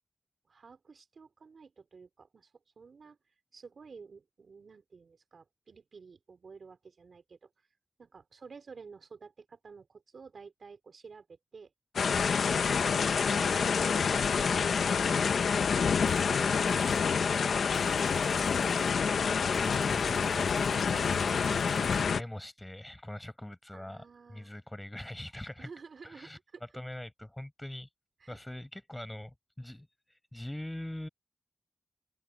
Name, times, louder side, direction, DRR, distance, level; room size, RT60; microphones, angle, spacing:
voice 1, 0.4-2.5 2.8-3.2 3.5-7.5 8.0-11.7 23.7-24.5 25.6-26.6 28.2-28.4, right 5 dB, 70° right, 4.5 m, -52 dB
sound 1, 12.0-22.2, left 6 dB, 90° left, 0.9 m, -27 dB
sound 2, 16.0-16.3 16.7-17.1 17.7-19.0 19.5-22.1, right 2 dB, 35° right, 3.0 m, -52 dB
voice 2, 19.2-25.7 26.0-26.4 26.7-27.9 28.3-31.1, left 1 dB, 10° left, 5.3 m, -43 dB
open air
cardioid pair, 70°, 0 cm